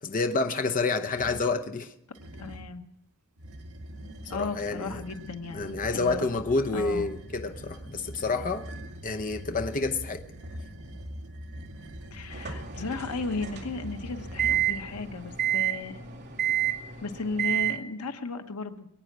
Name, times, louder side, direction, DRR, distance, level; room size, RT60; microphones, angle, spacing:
voice 1, 0.0-1.9 4.2-5.0 5.5-8.6 9.0-10.2, left 3 dB, 40° left, 0.8 m, -29 dB
sound 1, 1.0-1.5 2.1-2.8 3.4-15.4, equal, 75° right, 1.5 m, -42 dB
voice 2, 2.4-2.8 4.3-6.3 6.7-7.1 12.1-16.0 17.0-18.9, left 4 dB, 90° left, 1.1 m, -35 dB
sound 2, 12.3-17.8, right 11 dB, 50° right, 2.3 m, -30 dB
22.0 x 9.2 x 6.1 m
head